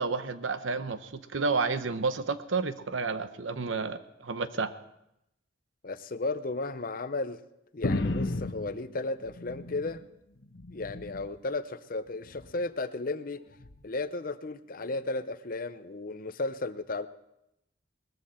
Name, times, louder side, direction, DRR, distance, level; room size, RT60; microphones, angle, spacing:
voice 1, 0.0-4.7, right 4 dB, 80° right, 12 dB, 0.9 m, -31 dB
voice 2, 5.8-7.4 7.7-10.0 10.7-13.4 13.8-17.1, left 3 dB, 45° left, 12 dB, 0.7 m, -34 dB
sound 1, 7.8-10.1 10.4-11.4 12.2-12.6 13.6-13.8, left 2 dB, 65° left, 1.0 m, -34 dB
19.5 x 14.0 x 4.3 m, 0.83 s
head